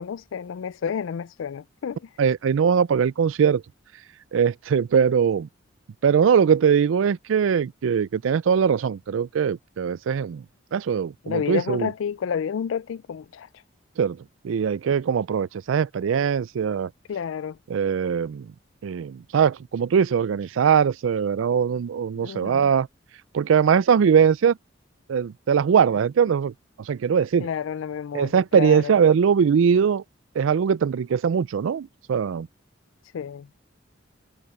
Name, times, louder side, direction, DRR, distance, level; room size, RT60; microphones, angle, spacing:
voice 1, 0.0-2.0 11.2-13.5 17.1-17.6 22.2-22.7 27.4-28.9 33.1-33.5, left 7 dB, 80° left, 0.4 m, -30 dB
voice 2, 2.2-3.6 4.3-5.5 6.0-10.4 10.7-11.9 14.0-14.2 14.4-16.9 17.7-18.5 18.8-22.9 23.3-24.6 25.1-26.5 26.9-27.5 28.1-30.0 30.4-32.5, right 7 dB, 85° right, 0.4 m, -21 dB
head